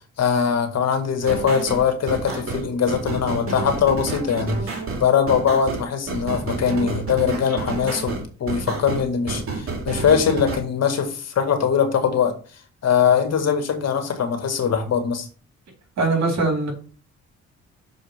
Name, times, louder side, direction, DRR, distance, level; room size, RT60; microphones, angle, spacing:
voice 1, 0.2-12.4 12.8-15.3, left 7 dB, 60° left, 1.9 m, -21 dB
sound 1, 1.2-10.6, right 3 dB, 45° right, 3.0 m, -29 dB
voice 2, 16.0-16.7, right 3 dB, 65° right, 3.5 m, -21 dB
6.5 x 5.1 x 6.5 m
cardioid pair, 90°, 30 cm